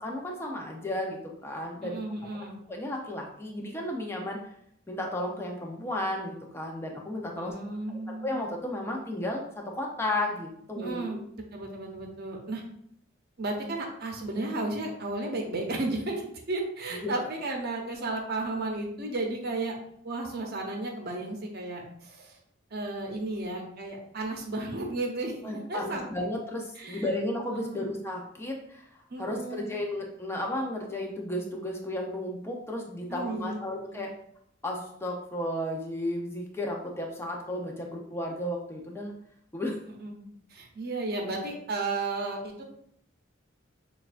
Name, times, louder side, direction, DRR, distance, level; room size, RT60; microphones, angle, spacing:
voice 1, 0.0-2.0 2.7-4.4 4.9-7.5 7.9-9.4 9.7-11.2 16.9-17.1 25.4-34.1 34.6-39.1 39.5-39.8, left 1 dB, 15° left, 0 dB, 0.6 m, -33 dB
voice 2, 1.8-2.6 7.3-8.3 10.8-12.6 13.4-19.7 20.0-22.4 22.7-26.1 26.8-27.0 27.5-27.9 29.1-29.8 33.1-34.1 40.0-40.2 40.5-42.6, right 2 dB, 55° right, 1 dB, 0.7 m, -34 dB
6.3 x 2.3 x 2.5 m, 0.69 s
head